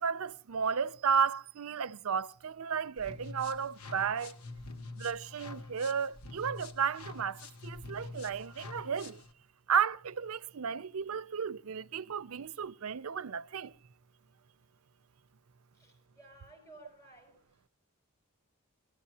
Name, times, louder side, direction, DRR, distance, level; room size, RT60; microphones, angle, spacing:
voice 1, 0.0-4.4 5.0-9.2 9.7-13.7, right 6 dB, 70° right, 0.5 m, -33 dB
sound 1, 3.0-9.3, left 3 dB, 85° left, 1.2 m, -46 dB
voice 2, 15.7-17.7, right 2 dB, 15° left, 5.8 m, -57 dB
21.5 x 13.0 x 2.9 m
head